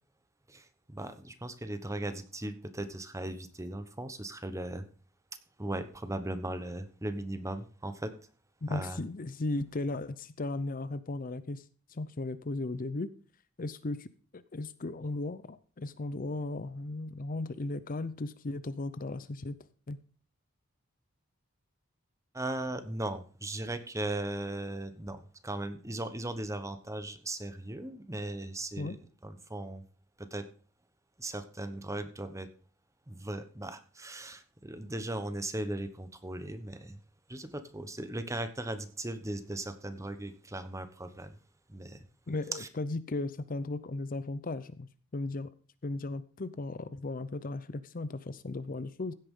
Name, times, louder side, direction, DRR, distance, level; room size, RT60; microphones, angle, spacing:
voice 1, 0.5-4.8 5.6-8.1 8.7-9.0 22.3-29.8 30.2-30.4 31.2-32.5 33.1-37.0 37.3-41.4 41.7-42.0 42.5-42.7, right 1 dB, 15° right, 10 dB, 1.1 m, -38 dB
voice 2, 8.6-11.6 11.9-13.1 13.6-19.6 19.9-20.0 28.8-29.0 42.3-45.5 45.8-49.1, left 2 dB, 40° left, 14 dB, 0.6 m, -36 dB
16.0 x 8.7 x 3.8 m, 0.40 s
head